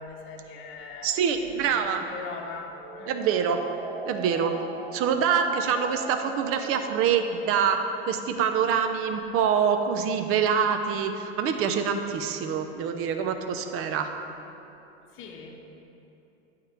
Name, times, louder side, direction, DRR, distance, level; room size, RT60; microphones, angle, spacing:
voice 1, 0.0-1.1 1.6-3.1 15.1-15.6, left 4 dB, 40° left, 0 dB, 1.0 m, -40 dB
voice 2, 1.0-2.0 3.1-3.6 4.1-4.6 4.9-7.8 8.1-14.1, right 7 dB, 45° right, 7 dB, 0.8 m, -25 dB
sound 1, 2.7-7.6, right 5 dB, 75° right, 1.2 m, -39 dB
9.1 x 3.8 x 7.0 m, 2.9 s
hypercardioid pair, 95°, 32 cm